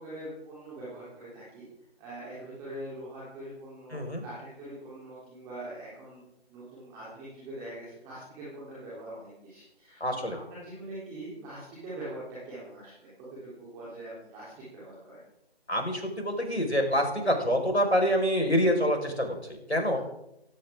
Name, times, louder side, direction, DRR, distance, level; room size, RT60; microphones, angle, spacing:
voice 1, 0.0-1.6 2.0-6.2 6.5-15.2 19.9-20.0, right 1 dB, 10° right, -8 dB, 3.4 m, -43 dB
voice 2, 3.9-4.2 10.0-10.4 15.7-19.4 19.7-20.0, equal, 90° left, 3 dB, 5.1 m, -26 dB
18.0 x 16.0 x 3.7 m, 0.83 s
figure-of-eight pair, 155°, 32 cm